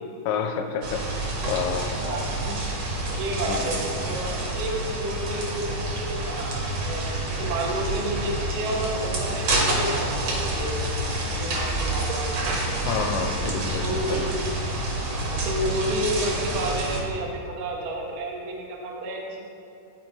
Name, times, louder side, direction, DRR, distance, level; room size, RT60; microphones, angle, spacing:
voice 1, 0.3-2.0 2.5-2.6 2.9-3.0 3.5-3.8 12.9-14.2, left 6 dB, 80° left, 5 dB, 2.1 m, -29 dB
sound 1, 0.8-17.0, right 2 dB, 60° right, 1.7 m, -28 dB
voice 2, 2.0-2.3 3.1-10.8 11.3-12.5 13.7-14.3 15.1-19.5, right 1 dB, 80° right, -2 dB, 1.1 m, -31 dB
13.0 x 4.7 x 3.2 m, 2.7 s
omnidirectional pair, 3.9 m